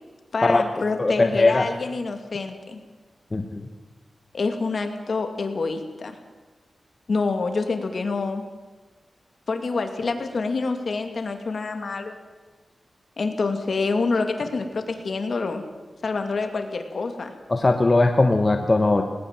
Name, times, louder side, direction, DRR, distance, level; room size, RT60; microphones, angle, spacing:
voice 1, 0.3-2.8 4.3-6.1 7.1-8.5 9.5-12.2 13.2-15.6 16.0-17.3, left 4 dB, 55° left, 6 dB, 2.5 m, -27 dB
voice 2, 1.0-1.6 3.3-3.6 17.5-19.0, left 2 dB, 30° left, 5 dB, 1.2 m, -19 dB
19.5 x 19.0 x 7.6 m, 1.3 s
wide cardioid pair, 120°, 0 cm